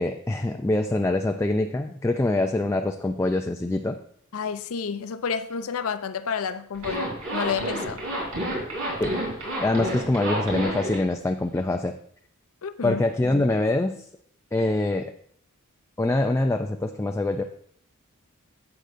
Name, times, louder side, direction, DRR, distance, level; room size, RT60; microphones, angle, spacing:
voice 1, 0.0-4.0 9.0-9.1 9.6-11.9 12.8-14.0 14.5-15.1 16.0-17.4, left 2 dB, 15° left, 0.3 m, -24 dB
voice 2, 4.3-8.0 12.6-13.0, left 6 dB, 70° left, 0.5 m, -30 dB
Zipper (clothing), 6.7-11.0, right 1 dB, 80° right, 3.8 m, -29 dB
11.5 x 7.8 x 2.6 m
head